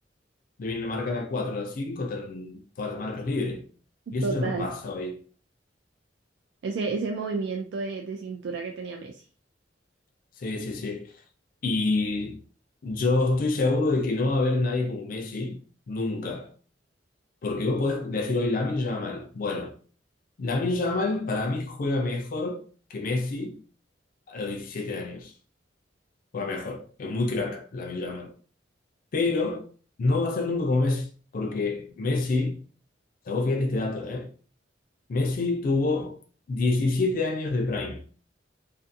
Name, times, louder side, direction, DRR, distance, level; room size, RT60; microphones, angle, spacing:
voice 1, 0.6-3.6 4.1-5.2 10.4-11.1 11.6-12.4 12.8-16.5 17.4-19.7 20.4-22.6 22.9-23.5 24.3-25.3 26.3-28.3 29.1-29.7 30.0-32.6 33.3-34.3 35.1-36.2 36.5-38.0, left 3 dB, 50° left, 0.4 m, -27 dB
voice 2, 4.2-4.7 6.6-9.2, right 4 dB, 70° right, 0.3 m, -31 dB
2.5 x 2.4 x 2.5 m
head